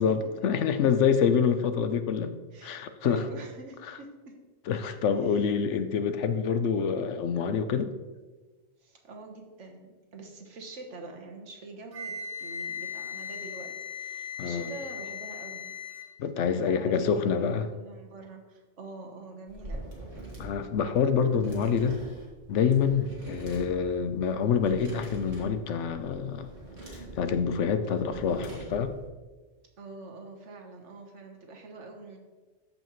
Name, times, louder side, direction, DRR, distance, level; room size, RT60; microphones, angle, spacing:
voice 1, 0.0-2.3 2.6-3.2 4.7-7.9 14.4-14.7 16.2-17.7 20.4-22.0 22.5-26.5 26.9-29.0, left 6 dB, 85° left, 10 dB, 1.0 m, -26 dB
voice 2, 2.5-4.4 5.2-5.4 8.8-15.8 16.4-19.9 23.0-23.2 29.8-32.2, right 3 dB, 90° right, 3 dB, 1.5 m, -45 dB
Wind instrument woodwind instrument, 11.9-16.1, left 6 dB, 30° right, 1.5 m, -38 dB
sound 1, 19.5-29.1, right 2 dB, 70° right, 2.3 m, -43 dB
13.5 x 5.3 x 3.1 m, 1.3 s
omnidirectional pair, 1.2 m